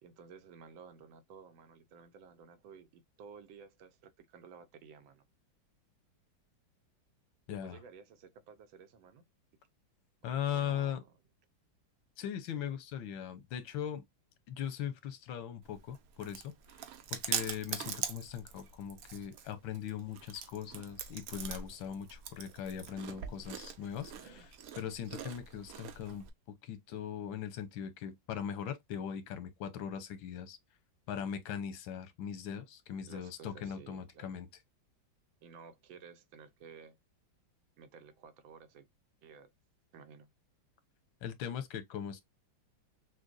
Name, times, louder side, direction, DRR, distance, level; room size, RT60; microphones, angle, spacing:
voice 1, 0.0-5.2 7.6-9.2 10.5-11.1 23.0-23.3 24.2-24.5 24.8-24.9 33.1-34.3 35.4-37.0 37.8-38.9 39.2-39.5 39.9-40.3, right 6 dB, 85° right, 1.6 m, -54 dB
voice 2, 7.5-7.8 10.2-11.0 12.2-14.0 14.5-24.4 24.8-26.3 26.6-30.6 31.1-34.5 41.2-42.2, left 9 dB, 90° left, 1.6 m, -40 dB
Chewing mastication, 15.6-26.3, right 8 dB, 65° right, 0.9 m, -43 dB
6.1 x 2.2 x 2.5 m
omnidirectional pair, 2.1 m